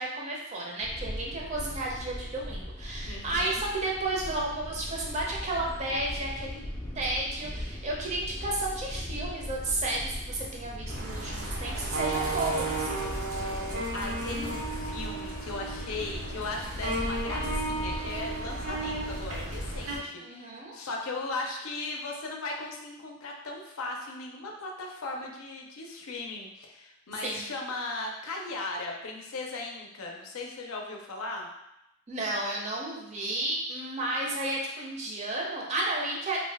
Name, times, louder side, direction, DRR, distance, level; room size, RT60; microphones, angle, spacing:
voice 1, 0.0-6.6 6.9-12.9 20.2-20.7 27.2-27.4 32.1-36.4, right 2 dB, 30° right, -2 dB, 0.5 m, -32 dB
sound 1, 0.8-19.8, equal, 20° left, 0.4 m, -39 dB
voice 2, 3.1-3.6 13.4-31.5, left 3 dB, 75° left, 1 dB, 0.5 m, -37 dB
sound 2, 10.9-20.0, right 2 dB, 80° right, 0.6 m, -34 dB
2.6 x 2.2 x 3.3 m, 0.87 s
head